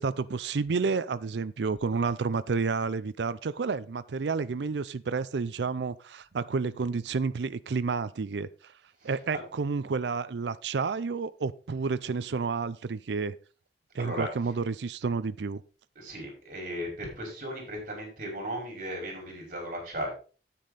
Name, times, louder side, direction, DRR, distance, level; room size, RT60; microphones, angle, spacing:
voice 1, 0.0-8.7 9.0-13.4 13.9-15.6, right 4 dB, 80° right, 15 dB, 0.5 m, -30 dB
voice 2, 9.0-9.4 14.0-14.3 16.0-20.1, equal, 45° right, 0 dB, 5.4 m, -36 dB
9.6 x 8.5 x 4.1 m, 0.36 s
head